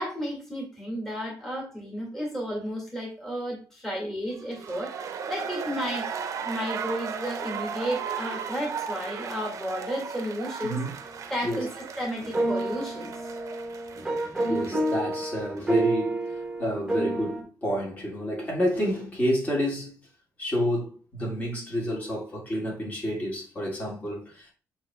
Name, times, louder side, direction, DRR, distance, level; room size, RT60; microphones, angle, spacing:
voice 1, 0.0-6.1 6.4-13.2, equal, 5° left, 1.9 m, -33 dB
sound 1, 4.4-15.3 15.6-15.7, right 6 dB, 60° right, 0.6 m, -36 dB
voice 2, 10.6-10.9 11.4-11.7 14.5-20.0 20.4-24.5, equal, 25° left, 1.8 m, -29 dB
sound 2, 12.2-17.4, right 2 dB, 10° right, 1.0 m, -29 dB
8.3 x 2.9 x 2.2 m
cardioid pair, 105°, 6 cm